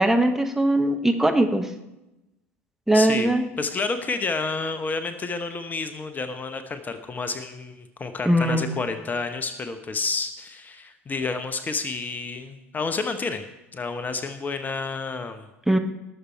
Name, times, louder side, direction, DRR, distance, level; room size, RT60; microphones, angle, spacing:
voice 1, 0.0-1.7 2.9-3.5 8.3-8.7 15.7-15.8, right 1 dB, 5° right, 5 dB, 1.0 m, -20 dB
voice 2, 2.9-3.3 3.6-13.5 13.7-15.5, left 4 dB, 25° left, 9 dB, 0.9 m, -30 dB
19.0 x 6.9 x 4.5 m, 0.98 s
figure-of-eight pair, 70°, 7 cm